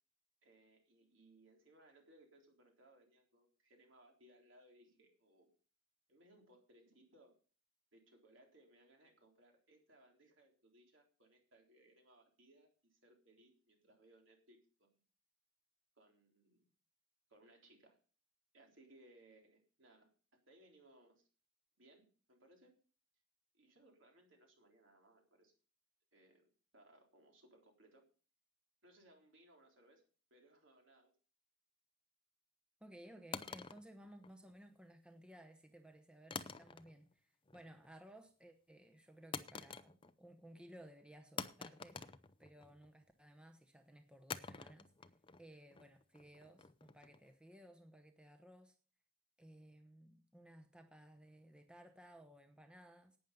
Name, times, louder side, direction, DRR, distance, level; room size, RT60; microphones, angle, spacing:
voice 1, 0.4-5.5 6.1-7.3 7.9-15.0 16.0-16.7 17.3-18.0 18.5-21.3 21.8-22.7 23.5-25.5 26.1-26.5 26.7-28.1 28.8-30.0 30.3-31.1, right 1 dB, 65° right, 1 dB, 3.8 m, -66 dB
voice 2, 32.8-42.0 42.4-45.1 45.4-48.8 49.4-53.2, right 1 dB, 5° right, 5 dB, 0.9 m, -59 dB
sound 1, 33.3-34.7 36.3-37.1 37.5-37.9 39.3-40.3 40.6-40.7 41.4-42.9 44.3-47.3, left 5 dB, 25° left, 0.6 m, -48 dB
11.5 x 9.2 x 5.4 m, 0.39 s
head